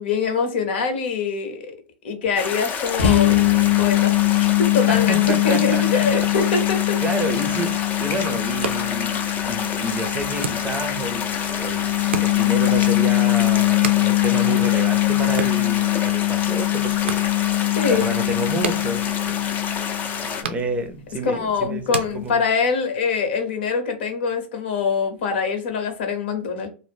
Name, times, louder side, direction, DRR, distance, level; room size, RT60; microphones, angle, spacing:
voice 1, 0.0-1.7 2.0-3.4 3.8-7.0 17.8-18.0 21.2-26.7, left 5 dB, 70° left, 1.0 m, -24 dB
sound 1, 2.4-20.4, left 6 dB, 30° left, 0.6 m, -29 dB
sound 2, 3.0-20.5, left 20 dB, 90° left, 0.6 m, -22 dB
voice 2, 4.9-6.1 7.0-17.2 17.9-19.4 20.3-22.4, right 2 dB, 20° right, 0.5 m, -29 dB
sound 3, 8.4-22.9, right 6 dB, 85° right, 0.4 m, -36 dB
2.5 x 2.0 x 3.4 m
hypercardioid pair, 105°, 6 cm